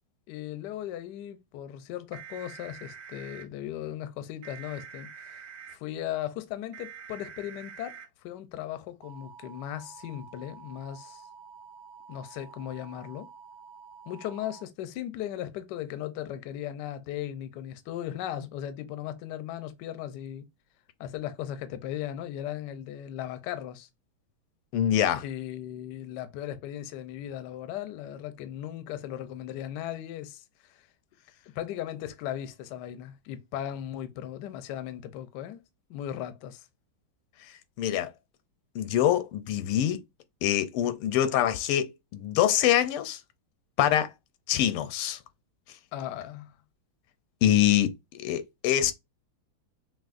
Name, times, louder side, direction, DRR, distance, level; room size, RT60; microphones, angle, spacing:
voice 1, 0.3-5.4 5.7-8.0 8.2-11.2 12.1-13.3 14.1-20.4 21.0-23.9 25.1-30.8 31.5-35.6 35.9-36.7 45.9-46.5, left 11 dB, 70° left, 1.0 m, -37 dB
sound 1, 2.1-3.4 4.4-5.8 6.7-8.1 9.0-14.6, right 6 dB, 60° right, 0.9 m, -47 dB
voice 2, 24.7-25.2 37.8-38.1 38.7-40.0 40.4-43.2 43.8-44.1 44.5-45.2 47.4-48.9, left 11 dB, 90° left, 1.5 m, -25 dB
6.0 x 2.4 x 2.5 m
omnidirectional pair, 2.3 m